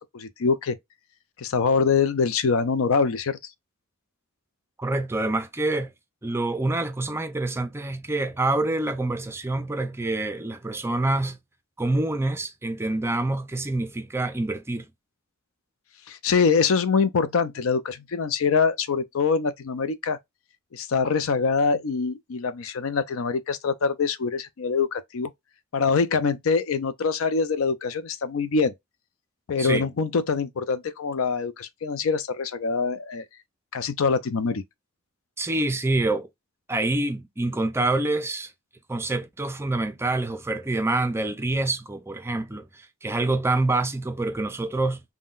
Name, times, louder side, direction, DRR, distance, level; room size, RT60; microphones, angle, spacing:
voice 1, 0.1-0.8 1.4-3.4 16.1-20.2 20.7-25.3 25.7-28.7 29.5-33.2 33.7-34.6, left 5 dB, 70° left, 0.5 m, -24 dB
voice 2, 4.8-5.9 6.2-11.4 11.8-14.9 29.6-29.9 35.4-36.3 36.7-38.5 38.9-45.0, right 2 dB, 10° right, 0.4 m, -26 dB
3.6 x 2.1 x 2.4 m
head